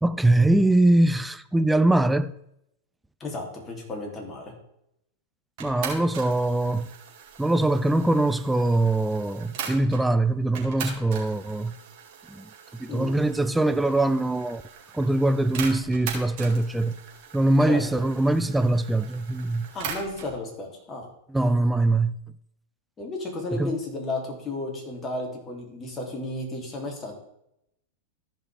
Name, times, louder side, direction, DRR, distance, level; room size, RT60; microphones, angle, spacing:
voice 1, 0.0-2.3 5.6-6.9 7.4-11.8 12.3-12.5 12.8-14.6 14.9-17.0 17.3-19.7 21.3-22.2 23.5-23.7, right 2 dB, 5° right, 0.4 m, -22 dB
voice 2, 3.2-4.5 12.9-13.1 17.6-18.0 19.7-21.1 23.0-27.2, left 2 dB, 25° left, 2.9 m, -33 dB
sound 1, 5.6-10.0 10.5-20.3, right 7 dB, 55° right, 2.5 m, -40 dB
14.0 x 5.5 x 3.4 m
hypercardioid pair, 100°, 0 cm